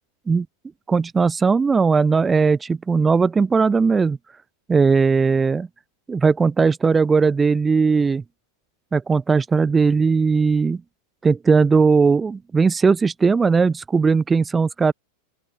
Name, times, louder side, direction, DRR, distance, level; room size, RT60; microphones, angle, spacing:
voice 1, 0.9-4.2 4.7-5.7 6.1-8.2 8.9-10.8 11.2-14.9, right 5 dB, 15° right, 0.3 m, -18 dB
open air
figure-of-eight pair, 90°, 0 cm